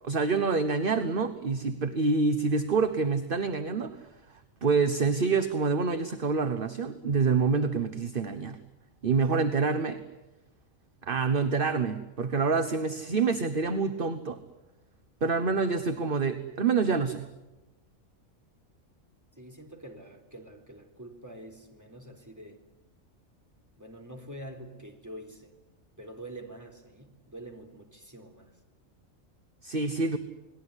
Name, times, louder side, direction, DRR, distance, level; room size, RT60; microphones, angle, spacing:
voice 1, 0.0-4.0 4.3-8.6 9.0-10.0 11.0-14.4 15.2-17.2 29.6-30.2, right 4 dB, 45° right, 9 dB, 1.3 m, -27 dB
voice 2, 19.4-22.7 23.8-25.6 26.0-28.6, right 1 dB, 15° right, 2 dB, 3.8 m, -46 dB
29.5 x 20.0 x 9.8 m, 1.1 s
omnidirectional pair, 1.4 m